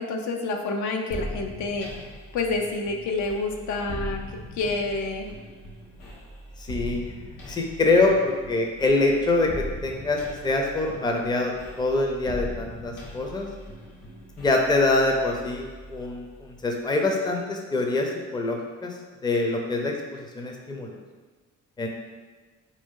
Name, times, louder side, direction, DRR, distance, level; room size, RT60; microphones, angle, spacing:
voice 1, 0.0-2.1 2.3-5.3, left 3 dB, 70° left, 3 dB, 0.5 m, -28 dB
sound 1, 1.1-16.7, left 1 dB, 90° left, 0.9 m, -40 dB
voice 2, 6.7-7.0 7.5-11.5 11.8-13.5 14.4-18.9 19.2-19.9 20.4-20.9 21.8-21.9, left 2 dB, 15° left, 1 dB, 0.5 m, -24 dB
3.0 x 2.7 x 3.6 m, 1.4 s
cardioid pair, 90°, 30 cm